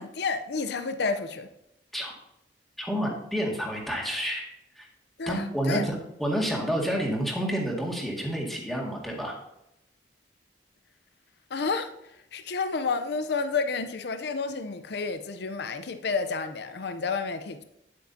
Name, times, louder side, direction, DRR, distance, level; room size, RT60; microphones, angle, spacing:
voice 1, 0.0-1.5 5.2-5.8 11.5-11.9 12.3-17.6, left 4 dB, 65° left, 0.6 m, -30 dB
voice 2, 2.8-4.5 4.8-4.9 5.3-5.9 6.2-9.3, equal, ahead, 1.9 m, -29 dB
9.4 x 8.4 x 2.7 m
head